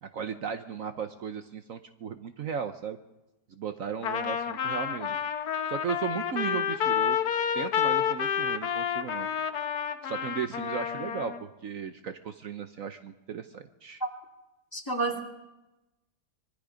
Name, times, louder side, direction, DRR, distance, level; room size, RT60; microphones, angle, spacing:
voice 1, 0.0-3.0 3.5-5.2 5.7-7.2 7.5-9.3 10.0-14.0, right 7 dB, 60° right, 8 dB, 1.2 m, -36 dB
Trumpet, 4.0-11.4, left 8 dB, 75° left, 1.5 m, -29 dB
voice 2, 14.7-15.2, right 3 dB, 15° left, 2 dB, 2.2 m, -29 dB
25.0 x 21.5 x 5.1 m, 1.0 s
omnidirectional pair, 1.7 m